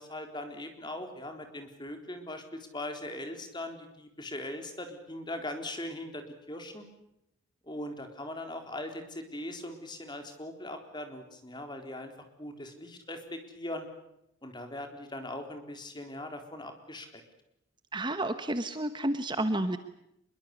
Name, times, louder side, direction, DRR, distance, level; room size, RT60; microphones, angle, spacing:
voice 1, 0.0-6.8 7.6-12.1 12.4-13.9 14.4-17.2, left 1 dB, 20° left, 5 dB, 3.9 m, -40 dB
voice 2, 17.9-19.8, right 1 dB, 25° right, 10 dB, 1.2 m, -30 dB
25.5 x 23.0 x 8.3 m, 0.81 s
head